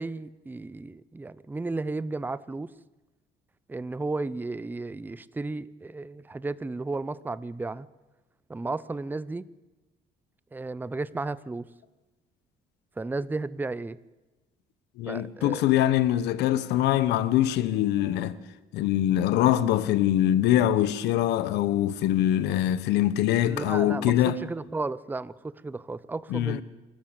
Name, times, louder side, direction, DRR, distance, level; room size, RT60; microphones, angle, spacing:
voice 1, 0.0-2.7 3.7-7.9 8.5-9.5 10.5-11.7 13.0-14.0 15.1-15.6 23.3-26.6, right 3 dB, 10° right, 0.6 m, -33 dB
voice 2, 15.0-18.4 18.7-24.4 26.3-26.6, left 12 dB, 85° left, 1.3 m, -23 dB
27.5 x 13.5 x 8.3 m
cardioid pair, 110°, 17 cm